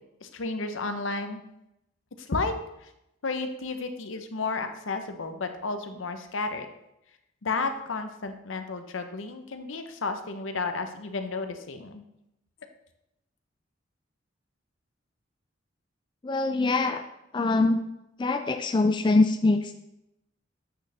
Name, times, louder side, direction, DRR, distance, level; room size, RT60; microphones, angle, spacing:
voice 1, 0.2-1.4 2.2-2.5 2.8-2.9 3.2-6.7 7.4-12.0, left 3 dB, 75° left, 7 dB, 0.8 m, -32 dB
voice 2, 16.2-17.0 17.3-17.8 18.2-19.7, left 3 dB, 25° left, 7 dB, 0.3 m, -23 dB
8.1 x 6.4 x 3.4 m, 0.86 s
head